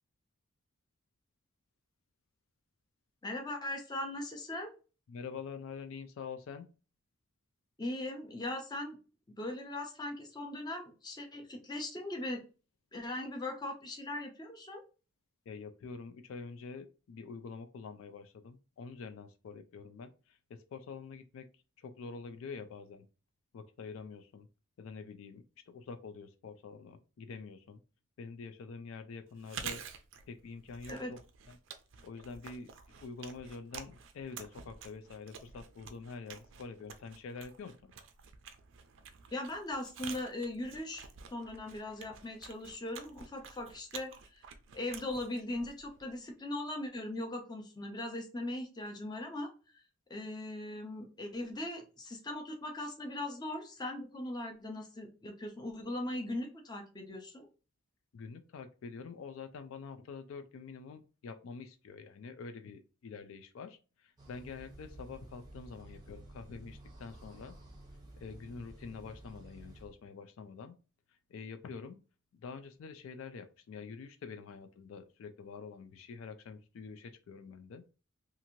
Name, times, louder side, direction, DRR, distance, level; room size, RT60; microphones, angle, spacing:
voice 1, 3.2-4.7 7.8-9.0 9.4-12.4 12.9-14.8 30.9-31.1 39.3-44.4 44.7-49.5 50.1-57.5, left 1 dB, 20° left, 3 dB, 0.5 m, -39 dB
voice 2, 5.1-6.7 15.5-23.1 23.5-24.5 24.8-27.8 28.2-29.8 30.3-31.2 31.5-31.6 32.0-32.7 33.0-37.9 58.1-67.6 68.2-70.8 71.1-72.0 72.3-77.8, left 5 dB, 70° left, 8 dB, 0.3 m, -46 dB
Chewing mastication, 29.3-46.2, right 7 dB, 60° right, 0.4 m, -49 dB
sound 1, 64.2-70.0, right 1 dB, 20° right, 0.6 m, -52 dB
2.9 x 2.5 x 2.7 m, 0.34 s
head